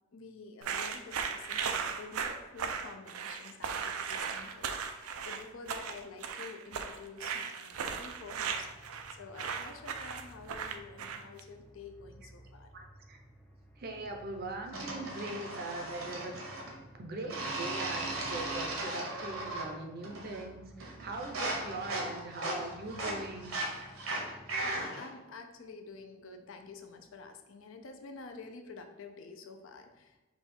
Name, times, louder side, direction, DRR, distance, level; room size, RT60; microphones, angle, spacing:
voice 1, 0.1-8.7 9.1-12.7 24.6-30.4, left 4 dB, 65° left, 6 dB, 0.5 m, -49 dB
sound 1, 0.6-11.4, right 6 dB, 90° right, 0.4 m, -37 dB
sound 2, 7.8-24.8, equal, 5° left, 0.4 m, -55 dB
voice 2, 12.7-13.2 13.8-16.4 16.9-23.5, right 2 dB, 45° right, 3 dB, 0.6 m, -41 dB
sound 3, 14.7-16.8 17.3-19.8 20.0-20.5 20.8-25.1, right 2 dB, 70° right, 1.0 m, -37 dB
5.4 x 2.3 x 4.3 m, 1.1 s
head